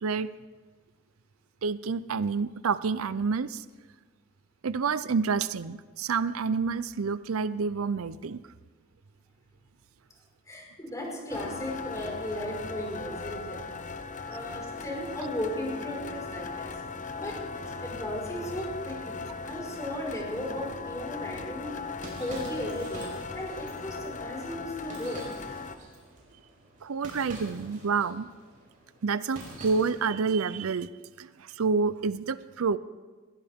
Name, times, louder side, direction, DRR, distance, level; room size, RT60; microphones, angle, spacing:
voice 1, 1.6-3.6 4.6-8.4 26.8-28.3 29.0-30.9 31.2-32.8, right 5 dB, 90° right, 15 dB, 0.5 m, -28 dB
voice 2, 10.4-13.6 14.2-16.7 17.2-21.7 22.1-25.2, left 1 dB, 15° left, -2 dB, 5.0 m, -36 dB
sound 1, 11.3-25.8, left 4 dB, 40° left, 0.8 m, -38 dB
sound 2, 21.5-30.2, right 2 dB, 40° right, 5.7 m, -47 dB
21.5 x 16.5 x 3.6 m, 1.3 s
head